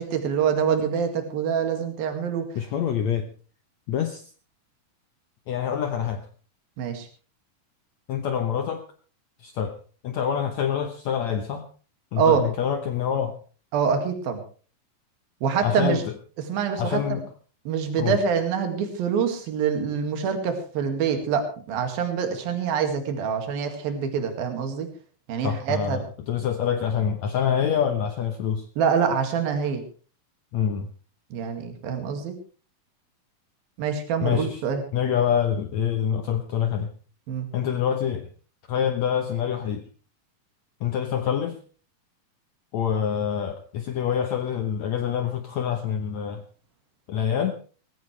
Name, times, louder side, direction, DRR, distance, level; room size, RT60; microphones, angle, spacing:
voice 1, 0.0-2.5 6.8-7.1 12.2-12.4 13.7-14.4 15.4-16.0 16.4-17.2 17.7-24.9 25.3-26.0 28.8-29.8 31.3-32.4 33.8-34.8 37.3-37.5, right 7 dB, 80° right, 6 dB, 3.9 m, -25 dB
voice 2, 2.6-3.3 3.9-4.2 5.5-6.2 8.1-8.9 9.4-9.7 10.0-11.7 12.1-13.4 15.6-16.0 16.8-17.2 18.0-18.2 25.4-28.7 30.5-30.9 34.2-34.6 34.9-36.9 37.5-38.3 38.7-39.8 40.8-41.6 42.7-46.4 47.1-47.5, left 8 dB, 65° left, 6 dB, 1.9 m, -26 dB
20.0 x 16.0 x 3.3 m, 0.38 s
omnidirectional pair, 4.2 m